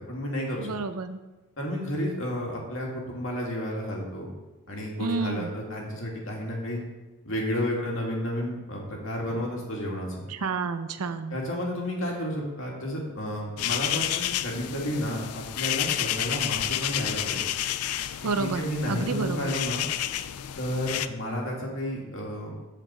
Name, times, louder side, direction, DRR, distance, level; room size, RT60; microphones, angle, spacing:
voice 1, 0.1-0.7 1.6-4.3 4.7-6.8 7.2-10.3 11.3-17.5 18.4-19.8 20.6-22.5, equal, 60° left, -2 dB, 2.3 m, -31 dB
voice 2, 0.6-1.2 5.0-5.5 10.3-11.4 18.2-19.5, right 4 dB, 90° right, 10 dB, 0.7 m, -30 dB
sound 1, 13.6-21.1, left 12 dB, 85° left, 0.4 m, -30 dB
14.5 x 5.1 x 4.4 m, 1.1 s
head